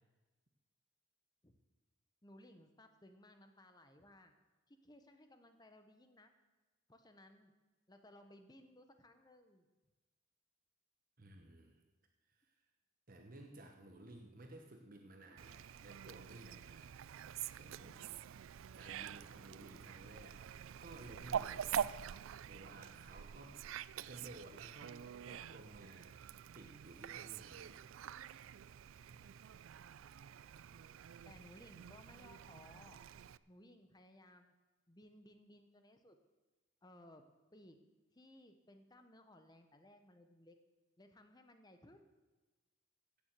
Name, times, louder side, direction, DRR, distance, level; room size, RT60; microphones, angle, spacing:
voice 1, 2.2-4.3 4.7-6.3 6.9-7.5 7.9-9.7 31.2-33.0 33.5-34.5 34.9-36.2 36.8-37.2 37.5-37.8 38.1-40.6 41.0-42.1, left 1 dB, 20° left, 7 dB, 0.9 m, -61 dB
voice 2, 11.2-11.8 12.3-12.5 13.1-16.9 17.5-18.0 18.7-20.4 20.8-21.8 22.4-23.6 24.1-25.0 25.3-26.1 26.5-27.8 29.1-29.3, right 1 dB, 45° right, 3 dB, 1.1 m, -56 dB
Fowl, 15.4-33.4, right 9 dB, 75° right, 0.4 m, -46 dB
16.0 x 7.1 x 7.6 m, 1.2 s
head